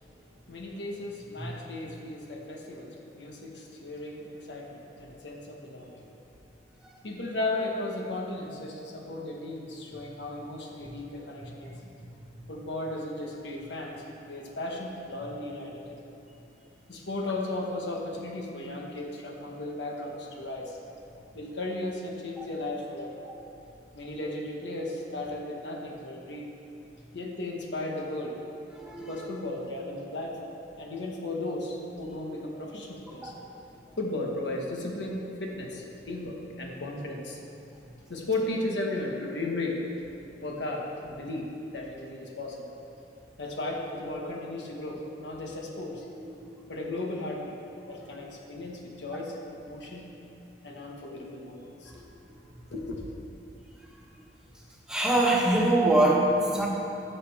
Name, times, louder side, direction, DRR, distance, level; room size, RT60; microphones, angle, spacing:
voice 1, 0.5-6.1 7.0-11.8 12.5-13.9 14.3-16.0 16.9-20.8 21.3-23.2 23.9-26.5 27.1-28.4 29.0-33.3 34.0-37.4 38.1-39.8 40.4-41.5 41.7-42.7 43.4-46.1 46.7-47.6 47.9-50.1 50.6-52.0 52.7-53.3, left 2 dB, 85° left, 0 dB, 1.4 m, -35 dB
voice 2, 28.8-29.3 33.2-33.3 54.9-56.7, right 1 dB, 5° right, -4 dB, 1.4 m, -24 dB
16.0 x 6.7 x 3.5 m, 2.9 s
head